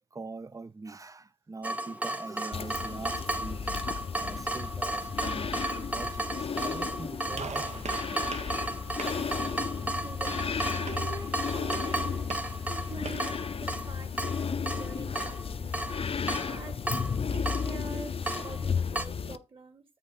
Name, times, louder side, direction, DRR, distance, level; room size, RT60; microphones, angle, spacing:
voice 1, 0.1-8.0, right 3 dB, 25° right, 0.6 m, -43 dB
Water tap faucet / Drip, 1.6-19.1, right 2 dB, 10° right, 1.0 m, -35 dB
sound 1, 2.5-19.4, left 6 dB, 50° left, 0.6 m, -34 dB
Gunshot gunfire, 7.3-13.4, right 5 dB, 65° right, 1.2 m, -44 dB
voice 2, 10.0-12.3 12.7-16.8 17.3-19.8, right 3 dB, 45° right, 2.8 m, -45 dB
8.4 x 5.3 x 4.2 m
wide cardioid pair, 95°, 12 cm